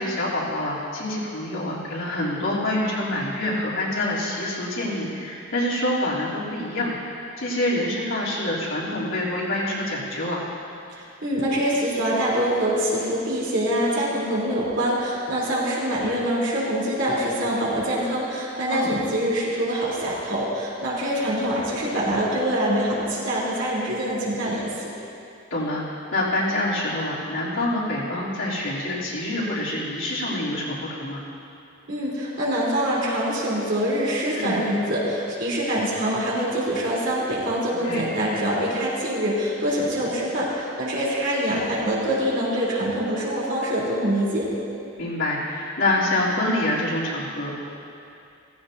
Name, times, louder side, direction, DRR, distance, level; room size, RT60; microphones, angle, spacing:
voice 1, 0.0-10.4 18.7-18.9 25.5-31.2 34.4-34.6 37.8-38.1 45.0-47.5, left 1 dB, 75° left, -7 dB, 3.3 m, -26 dB
voice 2, 11.0-24.9 31.9-44.5, equal, 65° right, -7 dB, 3.6 m, -25 dB
16.0 x 15.5 x 2.8 m, 2.6 s
head